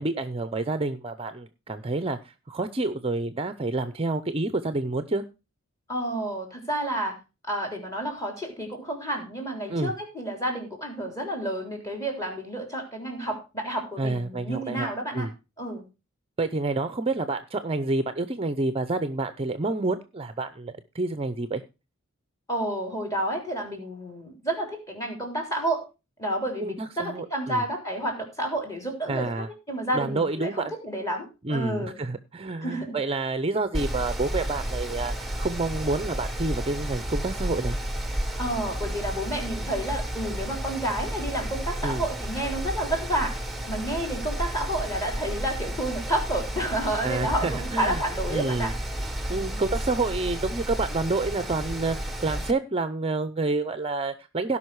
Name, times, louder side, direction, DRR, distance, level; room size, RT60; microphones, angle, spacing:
voice 1, 0.0-5.2 9.7-9.9 14.0-14.9 15.1-15.3 16.4-21.6 26.6-27.7 29.1-29.5 29.9-30.7 31.4-37.8 41.8-42.0 47.0-48.0 48.3-48.7 49.3-54.6, right 3 dB, 30° right, 11 dB, 0.7 m, -28 dB
voice 2, 5.9-7.2 7.5-15.3 15.6-15.8 22.5-25.8 26.2-31.9 32.6-32.9 38.4-48.7 49.3-49.6, right 1 dB, 15° left, 3 dB, 3.5 m, -30 dB
Mechanical fan, 33.7-52.5, right 1 dB, ahead, 1.2 m, -32 dB
17.0 x 5.7 x 4.7 m, 0.29 s
head